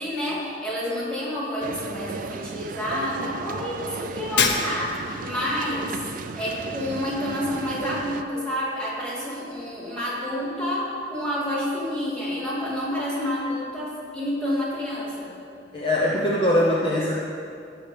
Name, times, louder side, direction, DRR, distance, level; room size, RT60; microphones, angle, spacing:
voice 1, 0.0-5.9 6.4-15.3, left 1 dB, 5° left, -8 dB, 2.5 m, -29 dB
sound 1, 1.6-8.2, right 4 dB, 45° right, 0.4 m, -35 dB
Shatter, 4.4-5.2, left 5 dB, 65° left, 0.8 m, -24 dB
voice 2, 15.7-17.2, left 1 dB, 30° left, -4 dB, 0.8 m, -22 dB
16.5 x 6.0 x 3.4 m, 2.4 s
head